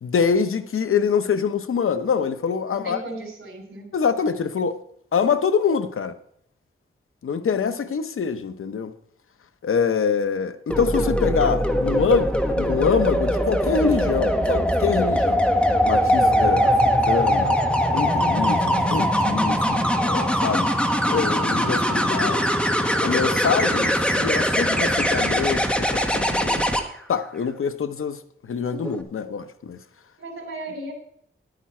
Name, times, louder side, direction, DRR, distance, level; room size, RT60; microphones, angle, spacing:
voice 1, 0.0-3.0 3.9-4.8 5.1-6.1 7.2-8.9 9.6-15.4 15.9-17.5 17.9-20.7 21.1-22.5 23.0-26.6 27.1-29.8, left 6 dB, 90° left, 0.9 m, -25 dB
voice 2, 2.7-3.9 30.2-30.9, right 2 dB, 85° right, 3.7 m, -35 dB
sound 1, 10.7-26.8 28.7-29.0, equal, 5° left, 1.4 m, -21 dB
11.5 x 9.1 x 4.4 m
wide cardioid pair, 85°, 21 cm